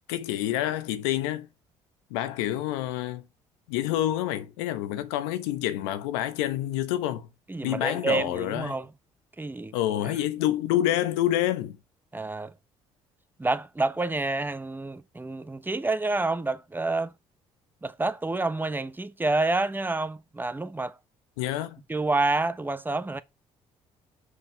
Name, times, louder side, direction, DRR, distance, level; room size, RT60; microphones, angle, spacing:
voice 1, 0.1-1.5 2.1-3.2 3.7-7.3 7.6-8.8 9.7-11.8 21.4-21.8, left 13 dB, 90° left, 1.0 m, -27 dB
voice 2, 7.5-8.9 9.4-9.7 10.0-10.2 12.1-12.5 13.4-17.1 17.8-21.0 21.9-23.2, right 2 dB, 15° right, 1.0 m, -28 dB
6.3 x 5.6 x 4.4 m
supercardioid pair, 60°, 14 cm